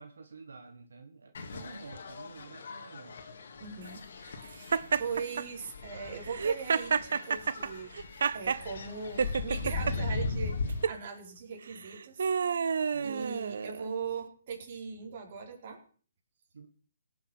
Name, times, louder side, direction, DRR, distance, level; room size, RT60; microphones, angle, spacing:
voice 1, 0.0-3.3 12.9-13.3 16.5-16.7, right 4 dB, 85° right, 6 dB, 1.7 m, -49 dB
sound 1, 1.3-10.8, left 3 dB, 65° left, 2.4 m, -38 dB
voice 2, 3.6-4.0 4.5-7.9 8.3-12.3 13.0-15.8, right 5 dB, 45° right, 1 dB, 4.6 m, -40 dB
Laughter, 4.7-5.4 6.3-8.6 9.2-9.9 10.7-11.0 11.7-13.9, right 6 dB, 65° right, 0.6 m, -30 dB
17.5 x 7.4 x 6.3 m, 0.43 s
hypercardioid pair, 155°, 0 cm